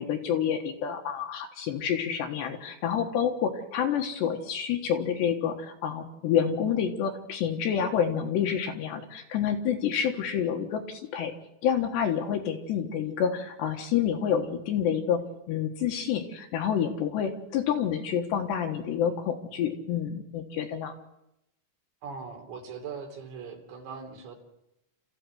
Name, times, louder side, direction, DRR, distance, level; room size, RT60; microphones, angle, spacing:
voice 1, 0.0-11.3 11.6-15.2 15.5-20.9, left 8 dB, 65° left, 3 dB, 3.2 m, -28 dB
voice 2, 22.0-24.4, right 5 dB, 60° right, 1 dB, 5.4 m, -40 dB
28.5 x 14.5 x 7.9 m, 0.87 s
omnidirectional pair, 6.0 m